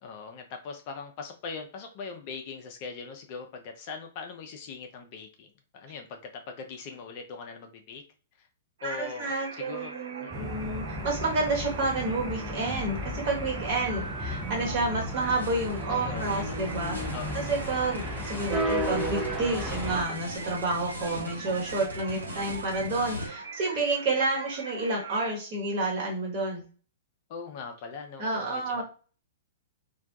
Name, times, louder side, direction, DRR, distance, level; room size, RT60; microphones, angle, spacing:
voice 1, 0.0-8.0 8.4-8.5 8.8-9.9 10.2-10.5 15.9-16.6 17.1-17.5 22.1-22.6 27.3-28.8, left 5 dB, 45° left, 4 dB, 0.4 m, -41 dB
voice 2, 8.8-26.6 28.2-28.8, right 2 dB, 45° right, -2 dB, 1.1 m, -30 dB
sound 1, 8.8-25.3, right 4 dB, 65° right, 0.4 m, -42 dB
sound 2, 10.3-20.0, equal, ahead, 0.6 m, -34 dB
sound 3, 14.2-23.3, equal, 85° right, 0.9 m, -41 dB
2.3 x 2.1 x 2.7 m, 0.37 s
figure-of-eight pair, 110°, 0 cm